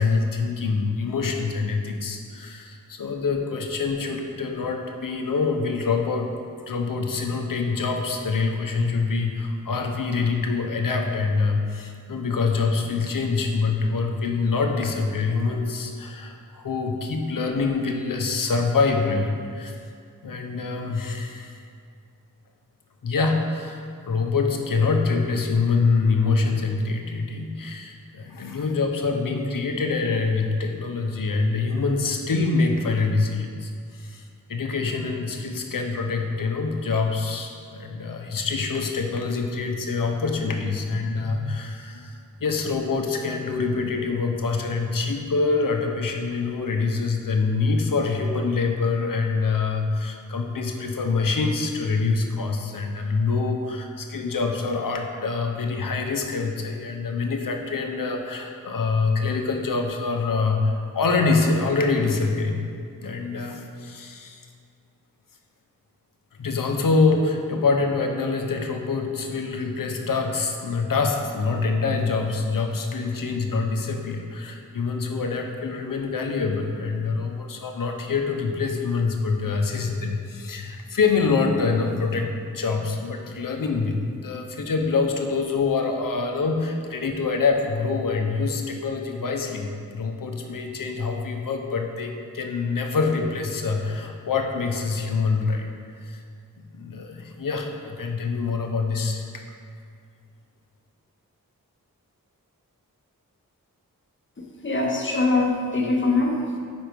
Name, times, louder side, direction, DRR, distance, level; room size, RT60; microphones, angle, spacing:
voice 1, 0.0-6.3 6.7-19.8 20.2-21.6 23.0-42.1 42.4-62.6 63.0-64.4 66.4-95.7 96.0-96.2 96.7-99.2, left 4 dB, 70° left, 3 dB, 0.7 m, -25 dB
voice 2, 104.6-106.6, left 3 dB, 35° left, 0 dB, 1.0 m, -22 dB
5.2 x 4.5 x 5.1 m, 2.3 s
wide cardioid pair, 50°, 34 cm